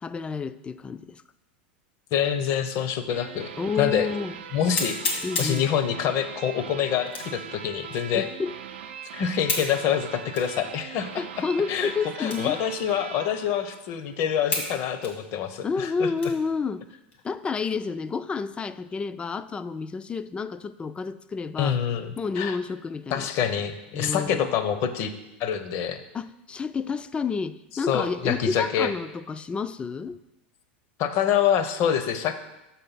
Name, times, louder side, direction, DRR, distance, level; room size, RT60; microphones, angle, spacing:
voice 1, 0.0-1.2 3.6-4.4 5.2-5.6 8.1-8.5 11.1-12.6 15.6-16.8 17.2-21.8 22.2-23.3 23.9-24.5 26.1-30.2, left 5 dB, 20° left, 13 dB, 0.3 m, -30 dB
voice 2, 2.1-3.5 3.8-4.1 4.5-8.3 9.1-11.9 12.2-16.1 21.6-22.6 23.1-25.1 25.4-26.0 27.9-28.9 31.0-32.4, left 9 dB, 50° left, 10 dB, 0.7 m, -26 dB
sound 1, 3.1-14.4, right 8 dB, 80° right, 0.5 m, -41 dB
sound 2, 3.4-3.5 4.0-4.1 4.7-5.7 7.1-7.4 8.0-8.1 9.5-9.7 10.3-10.5 11.1-11.2 12.2-12.6 12.9-13.0 13.6-13.7 14.5-14.7 15.0-16.5 17.0-17.2 17.7-18.1, left 3 dB, 85° left, 2.2 m, -31 dB
6.6 x 4.1 x 5.7 m, 0.95 s
hypercardioid pair, 105°, 6 cm